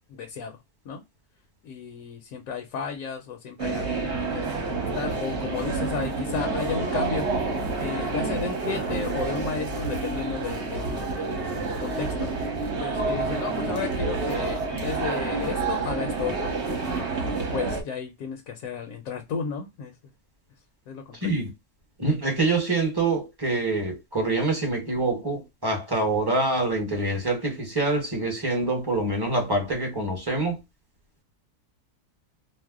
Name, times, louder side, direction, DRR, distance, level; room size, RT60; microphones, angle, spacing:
voice 1, 0.1-0.6 0.8-1.0 1.6-7.3 7.8-11.5 11.8-12.3 12.8-16.5 17.5-19.9 20.9-21.3, left 6 dB, 70° left, 1.0 m, -33 dB
sound 1, 3.6-17.8, right 3 dB, 50° right, 1.0 m, -28 dB
voice 2, 22.0-30.6, right 2 dB, 20° right, 0.7 m, -25 dB
2.6 x 2.0 x 3.4 m
omnidirectional pair, 1.6 m